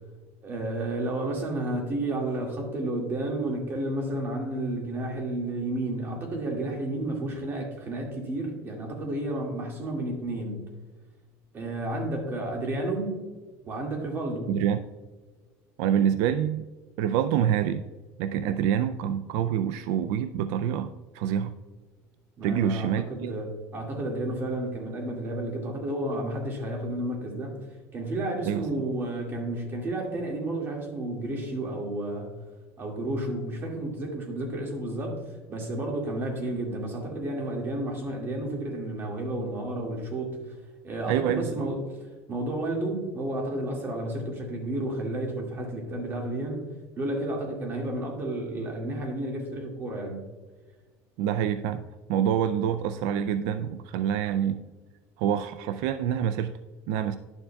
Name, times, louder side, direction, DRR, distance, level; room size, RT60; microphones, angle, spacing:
voice 1, 0.4-10.6 11.5-13.1 13.7-14.6 22.4-27.6 27.9-32.3 32.8-40.6 40.8-41.8 42.3-46.6 47.0-50.2, right 1 dB, 35° right, 1 dB, 2.0 m, -31 dB
voice 2, 14.5-14.8 15.8-16.7 17.0-17.8 18.2-21.5 22.4-23.3 28.5-28.6 41.1-41.7 51.2-51.8 52.1-54.6 55.2-56.5 56.9-57.2, right 9 dB, 80° right, 11 dB, 0.3 m, -26 dB
11.0 x 7.1 x 2.3 m, 1.3 s
cardioid pair, 135°, 7 cm